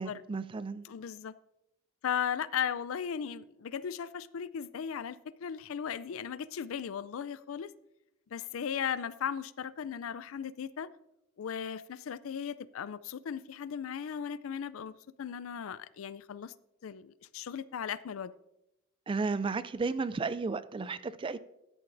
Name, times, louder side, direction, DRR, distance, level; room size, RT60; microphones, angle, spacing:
voice 1, 0.0-0.8 19.1-21.4, right 4 dB, 25° right, 0.3 m, -33 dB
voice 2, 0.8-1.3 2.0-7.7 8.3-10.9 11.4-14.9 15.2-16.5 16.8-18.3, left 8 dB, 75° left, 0.4 m, -37 dB
13.5 x 9.7 x 2.6 m
head